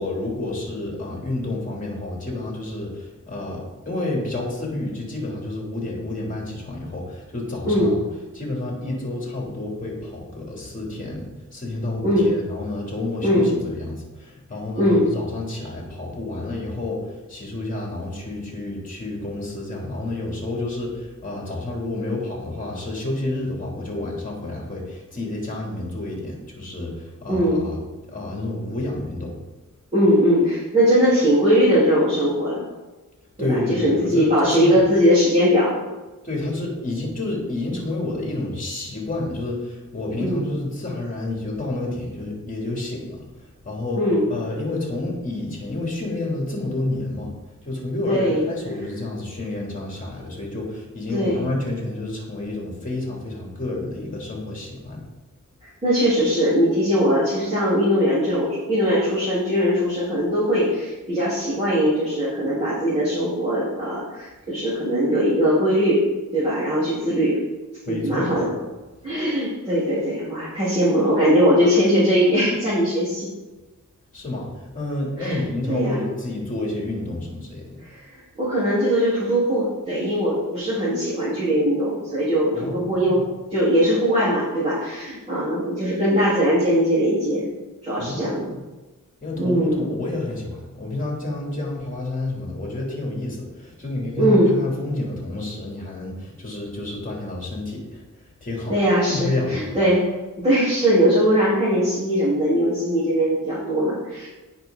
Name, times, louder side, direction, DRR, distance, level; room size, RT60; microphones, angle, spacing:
voice 1, 0.0-8.0 8.3-27.8 28.1-29.4 33.4-34.8 36.2-44.0 44.3-47.3 47.6-55.0 67.8-68.6 74.1-77.8 82.5-83.2 88.0-88.6 89.2-98.0 98.4-98.7 99.1-99.8, left 2 dB, 25° left, -2 dB, 3.2 m, -29 dB
voice 2, 27.3-27.6 29.9-32.6 33.4-35.8 40.2-40.5 43.9-44.3 48.1-48.5 51.1-51.4 55.8-66.0 66.3-67.4 67.9-68.5 69.0-73.3 75.2-75.4 75.7-76.0 77.8-83.2 83.5-87.5 87.8-88.5 89.4-89.9 94.2-94.5 98.7-100.0 100.4-104.3, equal, 20° right, -11 dB, 3.8 m, -20 dB
18.0 x 6.0 x 4.0 m, 1.2 s
wide cardioid pair, 180°, 32 cm